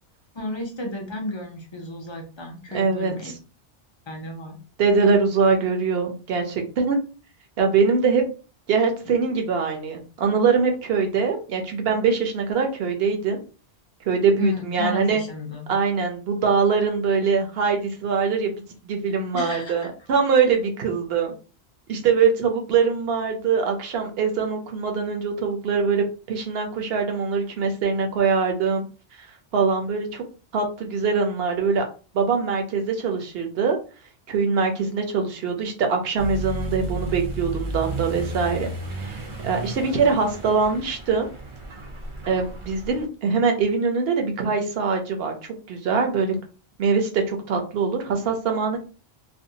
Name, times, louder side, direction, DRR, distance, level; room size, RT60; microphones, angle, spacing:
voice 1, 0.4-3.3 4.1-4.6 9.1-9.2 14.4-15.7 19.3-19.9, left 1 dB, 35° left, 2 dB, 0.4 m, -33 dB
voice 2, 2.7-3.3 4.8-7.0 7.6-8.2 8.7-13.4 14.1-15.2 15.7-18.5 18.8-21.3 21.9-28.8 29.2-29.3 29.5-30.2 30.5-31.8 32.1-33.8 34.3-38.7 39.0-41.3 42.3-45.3 45.7-46.4 46.8-48.8, right 5 dB, 65° right, 3 dB, 0.8 m, -23 dB
Accelerating revving vroom, 36.2-43.1, right 2 dB, 40° right, 0.5 m, -33 dB
2.5 x 2.2 x 2.7 m, 0.36 s
omnidirectional pair, 1.1 m